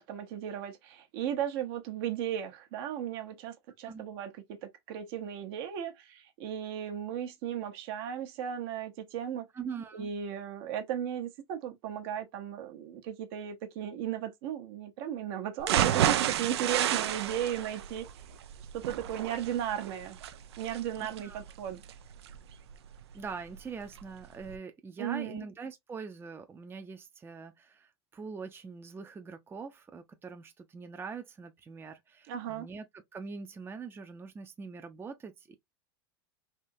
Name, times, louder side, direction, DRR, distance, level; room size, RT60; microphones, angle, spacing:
voice 1, 0.0-4.3 4.9-9.5 9.9-18.0 18.7-20.2 20.6-21.8 25.0-25.4 32.3-32.7, right 10 dB, 65° right, 1.0 m, -35 dB
voice 2, 9.5-10.1 21.0-21.4 23.1-35.5, right 5 dB, 15° right, 0.6 m, -43 dB
sound 1, 15.6-23.6 24.0-24.1 24.5-24.6, right 11 dB, 85° right, 0.5 m, -31 dB
3.5 x 2.8 x 2.6 m
hypercardioid pair, 105°, 14 cm